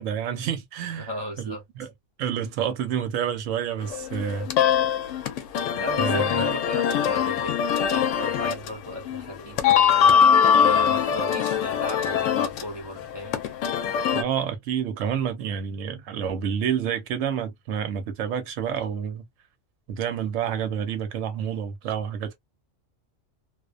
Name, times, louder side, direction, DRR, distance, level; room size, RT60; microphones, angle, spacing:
voice 1, 0.0-1.1 1.4-1.9 2.2-5.1 6.0-6.3 14.1-19.3 19.9-22.4, right 8 dB, 80° right, 1.0 m, -29 dB
voice 2, 1.0-1.6 5.8-10.1 10.6-13.4, equal, 30° right, 0.5 m, -36 dB
sound 1, 3.8-14.2, left 8 dB, 75° left, 0.9 m, -22 dB
2.4 x 2.1 x 2.3 m
omnidirectional pair, 1.3 m